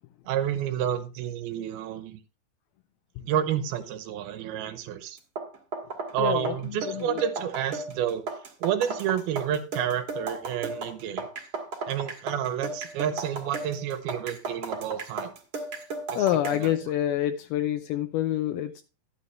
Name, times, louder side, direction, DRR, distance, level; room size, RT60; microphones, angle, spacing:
voice 1, 0.3-2.2 3.2-5.2 6.1-8.2 8.6-11.3 11.9-15.3 16.1-16.9, right 10 dB, 80° right, 10 dB, 2.7 m, -30 dB
sound 1, 5.2-16.7, right 3 dB, 45° right, 2.1 m, -35 dB
voice 2, 6.2-6.5 6.9-7.2 16.2-18.8, left 12 dB, 80° left, 7 dB, 2.5 m, -27 dB
11.5 x 9.4 x 3.2 m, 0.32 s
omnidirectional pair, 4.6 m